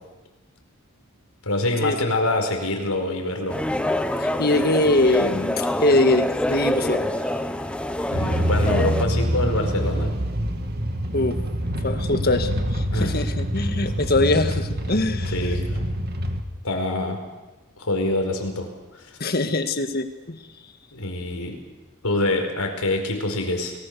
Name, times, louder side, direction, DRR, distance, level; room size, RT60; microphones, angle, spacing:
voice 1, 1.4-3.6 8.1-10.2 12.9-13.2 15.3-15.8 16.6-17.2 17.8-18.7 18.9-19.1 20.9-21.6 22.0-23.7, left 2 dB, 80° left, 4 dB, 4.9 m, -25 dB
sound 1, 3.5-9.0, left 1 dB, 5° left, 1.0 m, -26 dB
voice 2, 4.2-7.0 11.1-11.4 11.8-15.3 19.2-20.4, left 2 dB, 45° left, 8 dB, 1.7 m, -23 dB
sound 2, 8.1-16.4, equal, 45° right, 2.2 m, -26 dB
30.0 x 19.5 x 6.9 m, 1.1 s
head